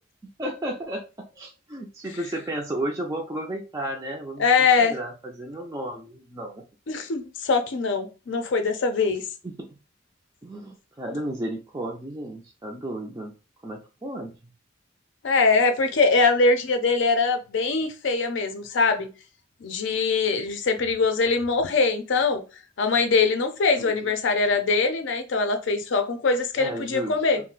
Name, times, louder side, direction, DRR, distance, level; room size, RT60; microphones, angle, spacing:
voice 1, 0.4-6.6 9.4-9.7 10.4-13.3 13.6-14.5 23.8-23.9 26.6-27.1, right 1 dB, 15° right, 0.3 m, -33 dB
voice 2, 4.4-4.9 6.9-9.2 15.2-19.1 19.6-22.4 22.8-27.4, left 4 dB, 65° left, 0.5 m, -22 dB
2.5 x 2.1 x 3.7 m
head